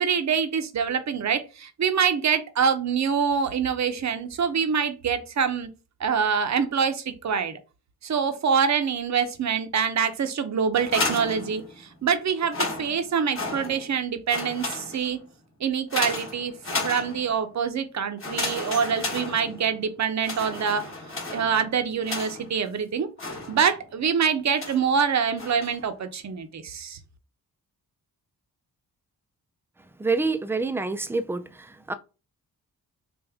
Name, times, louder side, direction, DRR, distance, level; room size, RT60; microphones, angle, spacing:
voice 1, 0.0-5.7 6.0-7.6 8.0-15.2 15.6-20.8 21.3-23.1 23.5-27.0, right 6 dB, 45° right, 0.7 m, -25 dB
sound 1, 10.7-12.0 12.4-14.0 14.3-15.2 15.9-17.5 18.2-19.8 20.2-22.6 23.2-23.9 24.6-24.9 25.4-25.9, left 2 dB, 35° left, 1.1 m, -33 dB
voice 2, 30.0-31.4 31.9-32.0, right 3 dB, 5° right, 0.3 m, -26 dB
3.5 x 2.5 x 3.5 m
cardioid pair, 70°, 39 cm